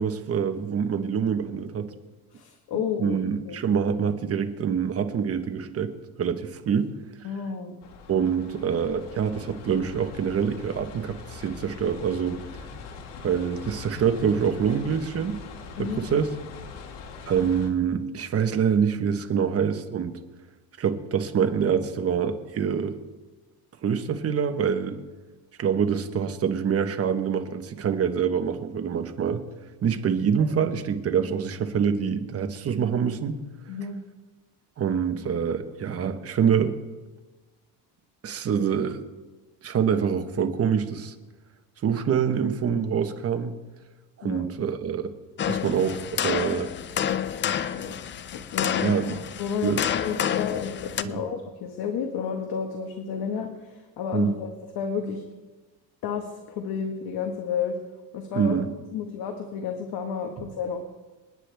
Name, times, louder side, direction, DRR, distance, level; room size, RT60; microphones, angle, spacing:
voice 1, 0.0-1.9 3.0-6.9 8.1-12.4 13.2-15.4 15.8-16.3 17.3-20.2 20.8-23.0 23.8-25.0 25.6-29.4 29.8-33.4 34.8-36.8 38.2-39.0 39.6-41.1 41.8-43.5 44.2-45.1 45.4-46.7 48.8-49.2 49.6-49.8 51.0-51.1 54.1-54.4 58.3-58.7, right 7 dB, 35° right, 7 dB, 1.2 m, -25 dB
voice 2, 2.3-3.2 3.5-3.6 7.2-7.8 15.8-16.0 33.7-34.0 44.2-44.5 47.5-47.9 48.3-49.0 49.4-55.2 56.0-57.8 58.1-58.6 58.9-60.8, left 6 dB, 65° left, 4 dB, 1.5 m, -31 dB
sound 1, 7.8-17.7, left 5 dB, 85° left, 1.9 m, -42 dB
sound 2, 45.4-51.0, left 9 dB, 30° left, 0.4 m, -29 dB
27.5 x 9.7 x 3.5 m, 1.2 s
cardioid pair, 140°, 41 cm